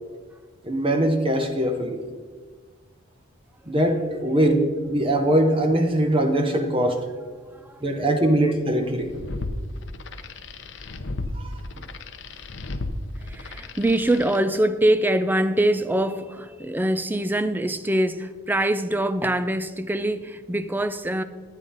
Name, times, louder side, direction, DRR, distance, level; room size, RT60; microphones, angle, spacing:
voice 1, 0.6-2.0 3.7-7.0 7.8-9.1 11.4-11.5, right 1 dB, 25° right, 5 dB, 0.8 m, -21 dB
voice 2, 7.5-8.0 8.2-8.4 13.2-21.2, right 1 dB, 10° right, 12 dB, 0.3 m, -24 dB
sound 1, 8.9-14.4, left 2 dB, 60° left, 0.7 m, -34 dB
9.9 x 9.8 x 3.9 m, 1.6 s
head